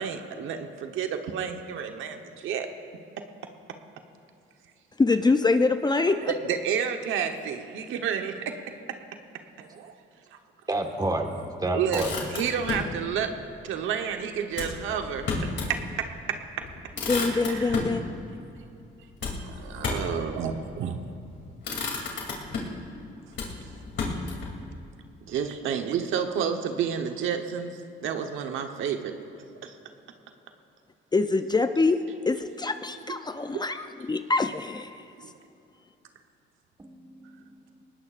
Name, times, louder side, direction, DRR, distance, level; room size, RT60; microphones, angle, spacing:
voice 1, 0.0-2.7 6.3-8.7 9.6-10.0 10.3-10.4 11.7-13.3 13.6-15.3 15.7-16.4 17.5-17.8 19.2-21.0 22.5-22.6 25.3-29.2 29.6-29.7 35.2-35.3, right 7 dB, 85° right, 5 dB, 1.1 m, -30 dB
voice 2, 5.0-6.3 17.1-18.0 31.1-32.0 32.3-35.0, left 3 dB, 20° left, 8 dB, 0.6 m, -24 dB
voice 3, 10.7-12.1 36.8-37.4, right 2 dB, 20° right, 4 dB, 1.6 m, -29 dB
Motor vehicle (road), 11.7-12.9 14.5-15.8 16.2-16.3 16.6-18.0 19.2-20.2 21.0-21.3 21.6-22.8 23.3-24.5, left 4 dB, 65° left, 2.8 m, -32 dB
20.5 x 19.0 x 2.5 m, 2.7 s
cardioid pair, 90°, 20 cm